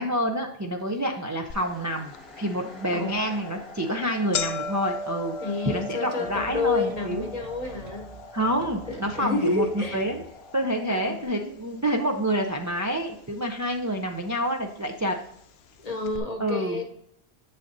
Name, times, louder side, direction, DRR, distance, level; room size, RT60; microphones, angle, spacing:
voice 1, 0.0-5.3 5.7-7.3 8.3-10.2 10.5-15.1 16.4-16.8, equal, 25° right, 0.5 m, -28 dB
sound 1, 0.8-11.3, left 3 dB, ahead, 1.3 m, -47 dB
sound 2, 1.5-1.6 2.1-2.2 3.1-3.3 3.6-3.7 3.9-12.2 12.4-13.2 14.0-14.1 15.0-15.1 15.4-15.5 16.0-16.2, left 3 dB, 75° left, 0.8 m, -38 dB
voice 2, 5.4-8.2 8.9-10.0 10.9-11.2 15.8-16.8, left 3 dB, 40° left, 1.0 m, -29 dB
sound 3, 6.3-10.3, right 4 dB, 75° right, 1.0 m, -46 dB
7.2 x 6.4 x 2.6 m
omnidirectional pair, 1.1 m